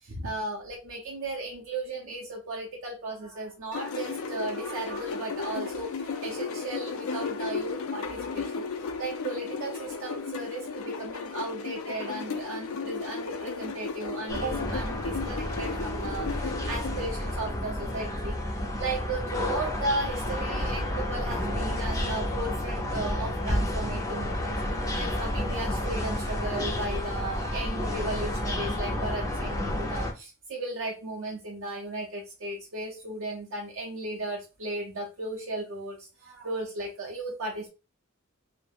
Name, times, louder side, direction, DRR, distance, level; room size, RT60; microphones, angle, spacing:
voice 1, 0.0-18.4 18.8-24.6 25.0-37.7, right 2 dB, 65° right, -1 dB, 0.5 m, -35 dB
sound 1, 3.7-17.0, left 4 dB, 85° left, 0.3 m, -35 dB
sound 2, 14.3-30.1, left 1 dB, 15° left, 0.4 m, -31 dB
2.3 x 2.0 x 3.2 m, 0.31 s
head